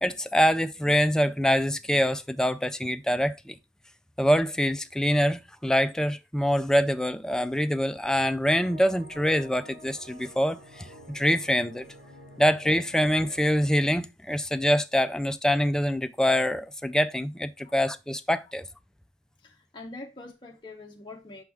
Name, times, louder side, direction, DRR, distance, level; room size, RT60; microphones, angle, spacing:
voice 1, 0.0-3.6 4.2-11.9 12.4-18.7, equal, 5° left, 0.3 m, -25 dB
sound 1, 8.4-14.0, right 1 dB, 80° right, 3.4 m, -48 dB
voice 2, 19.4-21.4, left 2 dB, 25° left, 0.7 m, -44 dB
6.2 x 4.7 x 3.4 m
head